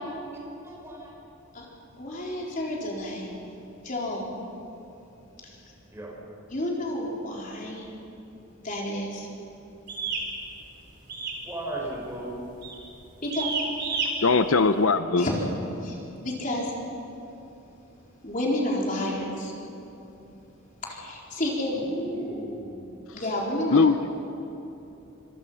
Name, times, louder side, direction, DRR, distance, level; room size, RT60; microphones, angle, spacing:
voice 1, 0.3-1.1 5.9-6.1 11.4-12.3 21.7-22.9, right 1 dB, 15° right, -3 dB, 5.8 m, -36 dB
voice 2, 2.0-3.3 3.8-4.3 5.4-5.6 6.5-7.8 8.6-9.3 13.2-13.4 15.2-15.4 15.8-16.7 18.2-19.5 20.8-21.8 23.1-23.8, left 1 dB, 40° left, -3 dB, 4.3 m, -30 dB
sound 1, 9.9-10.3 11.1-11.5 11.7-12.1 12.6-12.8 13.3-14.1, right 5 dB, 55° right, 4.1 m, -30 dB
voice 3, 14.2-15.3 23.7-24.1, left 4 dB, 75° left, 10 dB, 0.7 m, -20 dB
26.0 x 22.5 x 5.8 m, 2.9 s
head